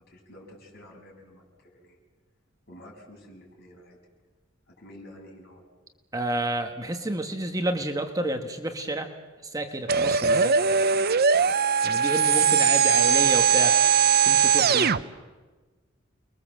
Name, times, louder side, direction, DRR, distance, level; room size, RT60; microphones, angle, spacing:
voice 1, 0.0-2.0 2.7-4.0 4.7-5.6 9.7-9.8, left 1 dB, 50° left, -1 dB, 7.4 m, -50 dB
voice 2, 6.1-9.1 9.4-10.5 11.8-13.8 14.2-14.9, right 1 dB, 15° right, 5 dB, 1.4 m, -30 dB
sound 1, 9.9-15.0, right 6 dB, 50° right, 0.7 m, -20 dB
29.5 x 22.0 x 7.6 m, 1.3 s
head